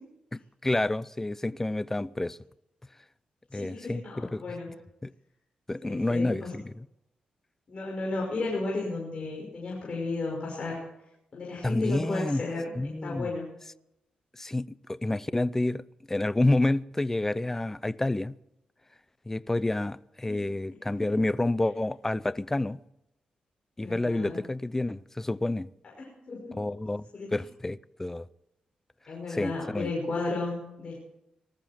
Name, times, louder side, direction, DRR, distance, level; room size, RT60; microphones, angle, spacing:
voice 1, 0.3-2.4 3.5-4.4 5.0-5.1 5.7-6.9 11.6-12.4 12.8-13.3 14.4-18.3 19.3-22.8 23.8-25.7 26.6-27.1 27.3-28.3 29.3-29.9, left 2 dB, 15° left, 0.6 m, -29 dB
voice 2, 3.5-4.7 5.8-6.5 7.7-10.8 11.3-13.5 20.3-20.4 21.0-21.1 23.8-24.4 26.0-26.6 27.1-27.3 29.1-31.0, left 3 dB, 45° left, 5.9 m, -34 dB
19.5 x 14.0 x 4.5 m
cardioid pair, 95°, 3 cm